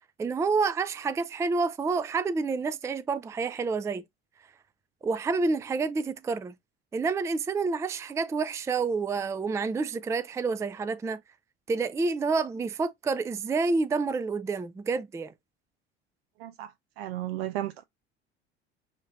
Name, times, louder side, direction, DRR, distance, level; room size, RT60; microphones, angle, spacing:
voice 1, 0.2-4.0 5.0-6.5 6.9-11.2 11.7-15.3, right 4 dB, 10° right, 0.4 m, -28 dB
voice 2, 16.4-17.8, right 14 dB, 70° right, 0.5 m, -34 dB
7.1 x 2.8 x 2.5 m
figure-of-eight pair, 65°, 32 cm